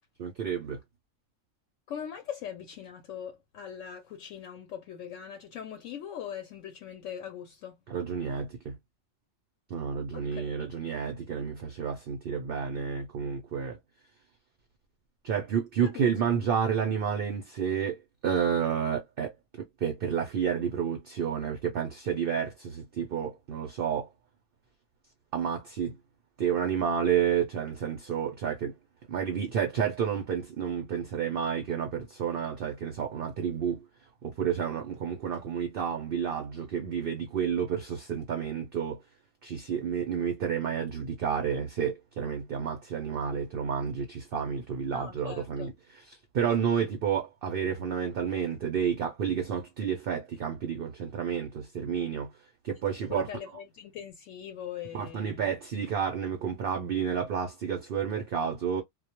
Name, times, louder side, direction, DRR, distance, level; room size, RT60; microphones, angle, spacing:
voice 1, 0.2-0.8 7.9-8.8 9.7-13.8 15.2-18.0 18.2-19.3 19.8-24.1 25.3-26.0 26.4-28.7 29.1-33.8 34.2-39.0 39.4-52.3 52.6-53.3 54.9-58.8, right 7 dB, 60° right, 0.6 m, -30 dB
voice 2, 1.9-7.7 10.1-10.7 15.8-16.0 44.9-45.7 53.1-55.5, left 9 dB, 75° left, 0.9 m, -41 dB
2.3 x 2.1 x 2.8 m
omnidirectional pair, 1.4 m